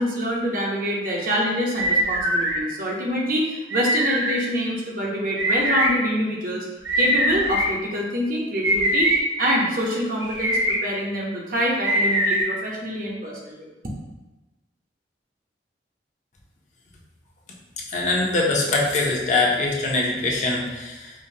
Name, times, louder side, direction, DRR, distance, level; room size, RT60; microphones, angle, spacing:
voice 1, 0.0-6.7 7.0-9.1 9.4-13.7, equal, 50° right, -3 dB, 0.7 m, -25 dB
sound 1, 1.8-2.5 3.7-4.3 5.4-5.9 6.8-7.7 8.6-9.2 10.2-10.7 11.8-12.4, right 1 dB, 90° right, 1.0 m, -22 dB
voice 2, 17.9-21.1, left 2 dB, 40° left, -2 dB, 0.6 m, -23 dB
5.0 x 2.1 x 2.7 m, 1.1 s
head